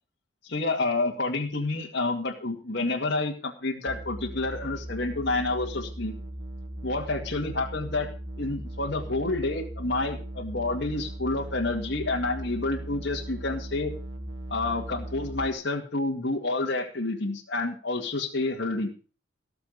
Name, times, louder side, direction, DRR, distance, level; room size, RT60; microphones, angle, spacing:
voice 1, 0.4-6.1 6.8-8.1 8.4-13.9 14.5-18.9, left 2 dB, 60° left, -1 dB, 2.2 m, -29 dB
sound 1, 3.9-15.5, right 1 dB, 75° right, 2.2 m, -38 dB
18.0 x 7.0 x 6.7 m, 0.37 s
head